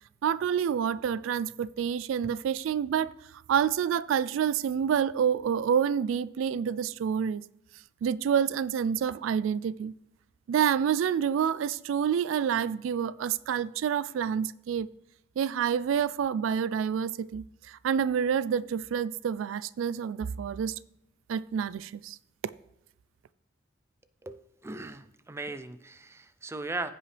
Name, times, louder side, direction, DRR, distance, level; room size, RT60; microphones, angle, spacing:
voice 1, 0.2-3.1 3.5-7.4 8.0-9.9 10.5-14.9 15.4-20.7 21.3-22.2, right 8 dB, 85° right, 0.3 m, -28 dB
voice 2, 24.2-26.9, right 2 dB, 15° right, 0.4 m, -38 dB
15.5 x 5.4 x 3.3 m
head